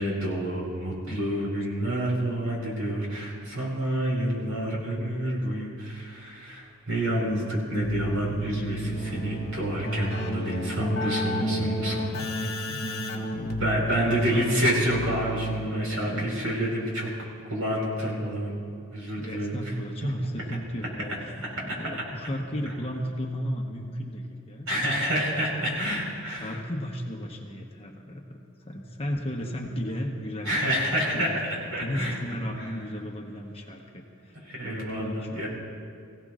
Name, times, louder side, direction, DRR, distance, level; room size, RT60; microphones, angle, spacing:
voice 1, 0.0-12.0 13.6-17.1 17.5-18.6 18.9-19.6 20.0-20.1 24.7-26.6 30.4-31.3 31.7-32.2 34.5-35.5, equal, 65° right, -2 dB, 4.5 m, -28 dB
Keyboard (musical), 7.7-16.1, equal, 45° left, 1.9 m, -31 dB
voice 2, 11.9-14.9 16.1-16.3 19.2-21.2 21.6-24.7 26.3-31.4 31.8-35.5, equal, 25° left, 1 dB, 1.1 m, -35 dB
23.5 x 16.0 x 2.5 m, 2.3 s
head